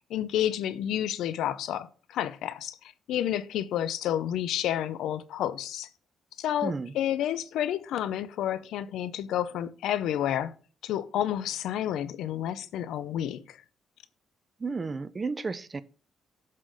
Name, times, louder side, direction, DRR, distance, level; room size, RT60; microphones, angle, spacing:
voice 1, 0.1-5.9 6.4-10.5 10.8-13.6, left 11 dB, 80° left, 0.6 m, -30 dB
voice 2, 6.6-6.9 14.6-15.8, right 4 dB, 30° right, 0.5 m, -32 dB
7.5 x 3.8 x 6.4 m
cardioid pair, 90°, 0 cm